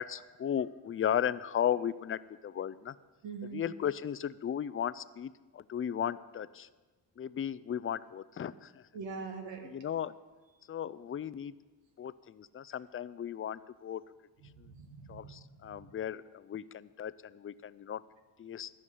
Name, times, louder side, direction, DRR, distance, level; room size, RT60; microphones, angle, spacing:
voice 1, 0.0-2.9 3.5-6.7 7.2-8.8 9.6-10.1 10.7-11.5 12.0-14.0 14.6-14.7 15.1-18.0 18.4-18.7, left 9 dB, 30° left, 16 dB, 0.4 m, -35 dB
voice 2, 3.2-3.6 8.9-9.7 14.4-15.3 15.6-15.8, right 5 dB, 80° right, 3 dB, 2.0 m, -43 dB
12.5 x 5.9 x 9.4 m, 1.2 s
cardioid pair, 80°, 43 cm